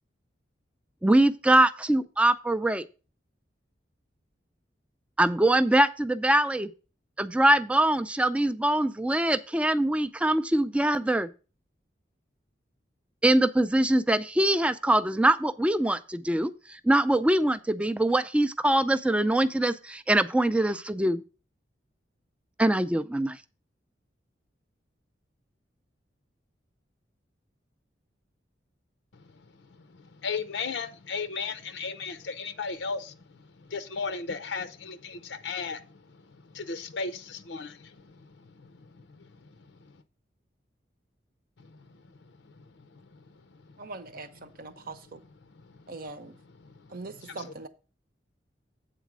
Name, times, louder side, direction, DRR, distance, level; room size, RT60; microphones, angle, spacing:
voice 1, 1.0-2.9 5.2-6.7 7.2-11.3 13.2-21.2 22.6-23.4, right 1 dB, 5° right, 0.4 m, -23 dB
voice 2, 30.2-33.1 33.7-35.8 36.5-37.9, left 4 dB, 80° left, 0.6 m, -34 dB
voice 3, 43.8-45.2 45.9-46.4 46.9-47.7, right 3 dB, 55° right, 0.8 m, -41 dB
8.3 x 4.0 x 6.1 m
head